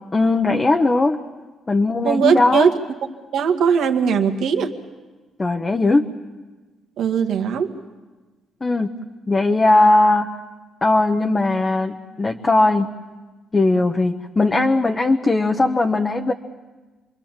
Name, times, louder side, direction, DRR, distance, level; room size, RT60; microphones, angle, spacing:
voice 1, 0.1-1.2 1.7-2.7 5.4-6.1 8.6-8.9 9.3-10.3 10.8-12.9 13.5-16.3, left 2 dB, 25° left, 3 dB, 1.1 m, -18 dB
voice 2, 2.0-2.7 3.3-4.7 7.0-7.7, right 7 dB, 75° right, 5 dB, 1.8 m, -19 dB
27.0 x 22.0 x 7.5 m, 1.3 s
cardioid pair, 90°, 0 cm